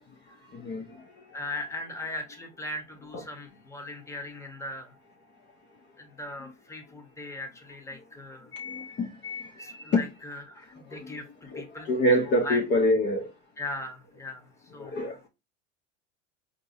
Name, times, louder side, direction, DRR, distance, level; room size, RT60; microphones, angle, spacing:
voice 1, 0.5-0.8 8.5-10.0 10.9-11.1 11.5-13.3 14.8-15.2, left 1 dB, 30° left, 0.6 m, -26 dB
voice 2, 1.3-4.9 6.0-8.5 9.6-11.2 11.5-11.9 12.2-12.6 13.6-15.1, left 2 dB, 10° left, 1.0 m, -39 dB
4.5 x 2.6 x 2.6 m
hypercardioid pair, 95°, 36 cm